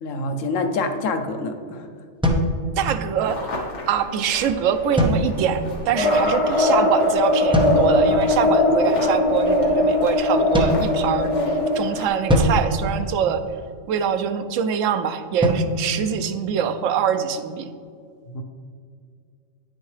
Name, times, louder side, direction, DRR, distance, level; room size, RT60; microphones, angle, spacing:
voice 1, 0.0-1.9 18.3-18.4, left 3 dB, 90° left, 6 dB, 1.1 m, -26 dB
sound 1, 2.2-3.3 5.0-5.8 7.5-8.2 10.5-11.6 12.3-13.8 15.4-16.9, equal, 5° right, 0.6 m, -24 dB
voice 2, 2.8-3.5 3.9-11.3 11.7-13.4 13.9-17.7, right 8 dB, 85° right, 9 dB, 1.0 m, -24 dB
sound 2, 3.2-12.1, left 1 dB, 70° left, 1.6 m, -36 dB
sound 3, 6.0-11.8, left 1 dB, 30° left, 0.7 m, -20 dB
9.1 x 6.4 x 3.3 m, 2.2 s
omnidirectional pair, 1.3 m